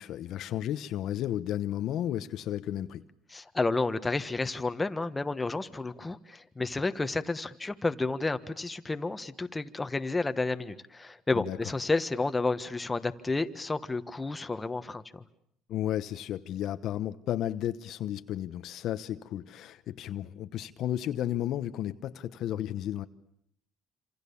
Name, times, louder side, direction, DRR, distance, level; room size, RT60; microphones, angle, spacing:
voice 1, 0.0-3.0 11.3-11.6 15.7-23.1, left 12 dB, 65° left, 1.0 m, -33 dB
voice 2, 3.3-15.2, left 3 dB, 15° left, 1.4 m, -31 dB
27.0 x 27.0 x 7.1 m
supercardioid pair, 95°, 0 cm